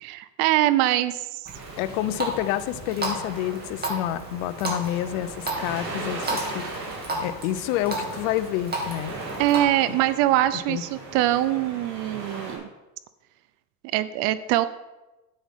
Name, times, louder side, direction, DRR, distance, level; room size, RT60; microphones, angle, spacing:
voice 1, 0.0-1.4 9.4-12.6 13.9-14.7, right 14 dB, 55° right, 15 dB, 0.6 m, -23 dB
Water tap faucet, 1.5-9.6, right 2 dB, 20° right, 2.4 m, -34 dB
sound 1, 1.5-12.6, right 2 dB, 85° right, 3.2 m, -38 dB
voice 2, 1.8-6.7 7.2-9.2 10.7-10.8, left 13 dB, 60° left, 14 dB, 0.7 m, -28 dB
9.8 x 7.7 x 3.7 m, 1.1 s
supercardioid pair, 105°, 48 cm